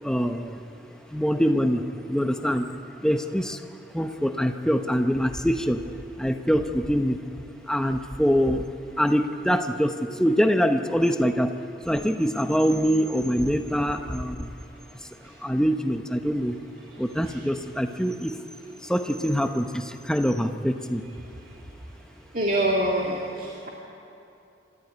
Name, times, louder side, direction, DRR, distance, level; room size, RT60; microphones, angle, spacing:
voice 1, 0.0-0.6 1.1-2.7 3.0-3.6 3.9-5.8 6.2-7.2 7.7-8.7 9.0-11.5 11.8-14.5 15.2-16.6 17.0-18.3 18.8-21.0, equal, 5° left, 6 dB, 0.9 m, -24 dB
voice 2, 22.3-23.7, right 1 dB, 45° right, -2 dB, 2.2 m, -25 dB
26.0 x 14.0 x 9.3 m, 2.7 s
head